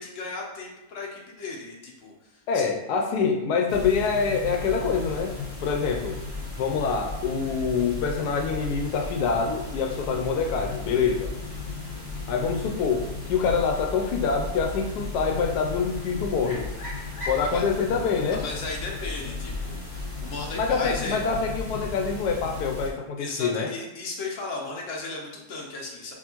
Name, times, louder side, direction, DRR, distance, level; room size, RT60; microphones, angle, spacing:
voice 1, 0.0-2.7 17.4-17.6 18.3-21.2 23.2-26.1, left 3 dB, 55° left, -2 dB, 1.1 m, -36 dB
voice 2, 2.5-5.4 5.6-6.2 6.6-11.3 12.3-16.6 17.3-18.4 20.5-23.7, left 5 dB, 90° left, 2 dB, 1.1 m, -25 dB
sound 1, 3.7-22.9, left 3 dB, 40° left, 1.8 m, -35 dB
6.0 x 2.5 x 2.9 m, 0.99 s
omnidirectional pair, 1.7 m